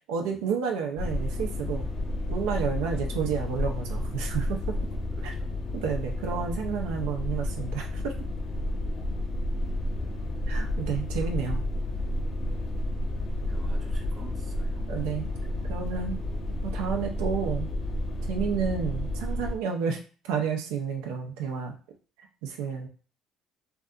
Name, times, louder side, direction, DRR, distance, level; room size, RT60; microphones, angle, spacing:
voice 1, 0.1-1.9 2.3-4.8 5.2-5.3 5.7-8.1 10.5-11.6 14.9-15.3 15.7-16.2 16.6-17.7 18.3-20.0 20.2-21.7 22.4-22.9, right 6 dB, 90° right, 2 dB, 0.4 m, -30 dB
sound 1, 1.0-19.6, left 1 dB, 50° left, 0.6 m, -31 dB
voice 2, 2.8-3.2 4.7-5.5 13.5-15.0, right 4 dB, 35° right, 3 dB, 0.6 m, -50 dB
2.6 x 2.4 x 2.3 m, 0.38 s
supercardioid pair, 90°, 0 cm